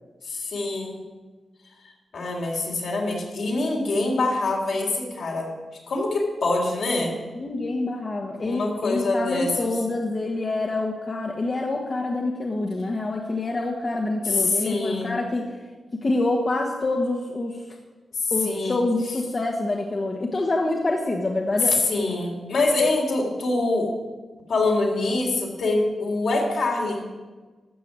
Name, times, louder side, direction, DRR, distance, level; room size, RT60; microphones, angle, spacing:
voice 1, 0.2-1.0 2.1-5.5 5.9-7.2 8.4-9.7 14.2-15.2 18.2-18.8 21.7-23.9 24.5-27.0, left 2 dB, 75° left, -2 dB, 3.5 m, -24 dB
voice 2, 7.4-15.6 15.9-17.6 18.3-21.8, left 2 dB, 40° left, 0 dB, 1.4 m, -26 dB
13.0 x 6.6 x 7.5 m, 1.3 s
cardioid pair, 70°, 0 cm